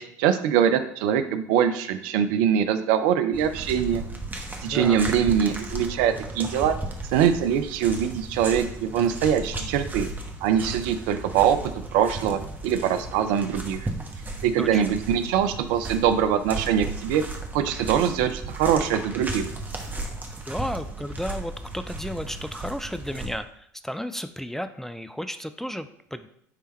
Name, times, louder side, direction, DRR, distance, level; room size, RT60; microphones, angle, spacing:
voice 1, 0.0-4.0 4.6-6.7 7.1-10.1 10.4-11.6 11.9-13.9 14.4-17.2 17.5-19.4, right 8 dB, 65° right, 10 dB, 0.5 m, -23 dB
sound 1, 3.3-23.3, right 2 dB, 20° right, 1.1 m, -35 dB
voice 2, 4.6-5.0 14.6-14.8 20.5-26.3, equal, 5° left, 10 dB, 0.4 m, -33 dB
9.7 x 3.4 x 3.2 m, 0.69 s
figure-of-eight pair, 60°, 10 cm